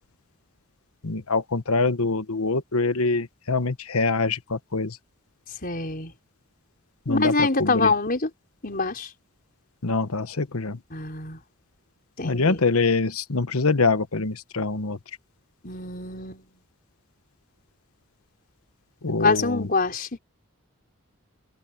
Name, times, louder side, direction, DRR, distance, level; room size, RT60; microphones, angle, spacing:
voice 1, 1.0-5.0 7.1-7.9 9.8-10.8 12.2-15.0 19.0-19.7, left 3 dB, 80° left, 1.2 m, -24 dB
voice 2, 5.6-6.1 7.1-8.3 8.6-9.1 10.9-11.4 12.2-12.6 15.6-16.5 19.2-20.1, left 3 dB, 40° left, 4.9 m, -25 dB
open air
head